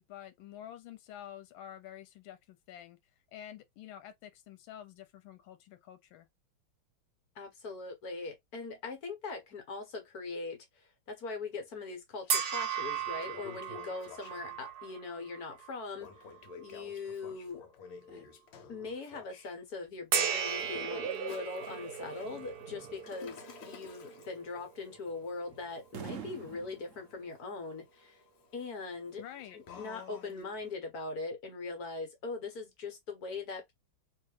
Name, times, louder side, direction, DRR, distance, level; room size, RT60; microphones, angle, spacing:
voice 1, 0.0-3.0 3.3-6.3 29.2-29.6, left 11 dB, 85° left, 1.5 m, -49 dB
voice 2, 7.3-16.3 16.6-17.6 18.1-18.2 18.7-28.2 28.5-29.2 29.5-33.7, left 3 dB, 50° left, 1.6 m, -41 dB
Toilet flush, 12.2-12.3 12.8-14.7 16.0-19.5 20.4-30.7, left 6 dB, 70° left, 1.6 m, -53 dB
sound 1, 12.3-15.8 16.4-16.5 20.1-26.5, right 7 dB, 60° right, 1.2 m, -37 dB
sound 2, 22.0-27.2, right 7 dB, 75° right, 0.7 m, -48 dB
3.3 x 2.8 x 3.2 m
omnidirectional pair, 2.2 m